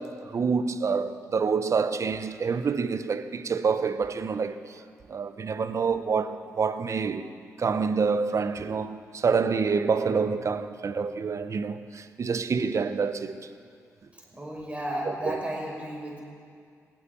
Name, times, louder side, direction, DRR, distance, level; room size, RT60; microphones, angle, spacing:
voice 1, 0.0-4.8 5.1-7.3 7.6-13.4 15.1-15.4, right 5 dB, 55° right, 0.8 m, -27 dB
voice 2, 14.1-16.2, equal, 20° right, 5.3 m, -34 dB
18.0 x 8.9 x 9.0 m
cardioid pair, 55°, 6 cm